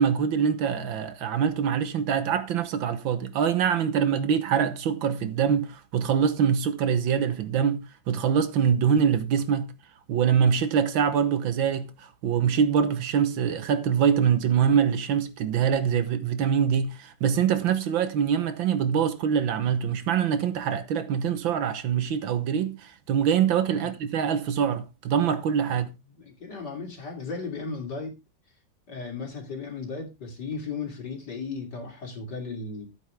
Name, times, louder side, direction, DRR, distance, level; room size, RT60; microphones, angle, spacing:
voice 1, 0.0-9.7 10.1-25.9, right 7 dB, 70° right, 1.7 m, -24 dB
voice 2, 25.7-28.2 28.9-32.9, left 4 dB, 55° left, 3.4 m, -36 dB
11.5 x 8.8 x 3.4 m
omnidirectional pair, 2.2 m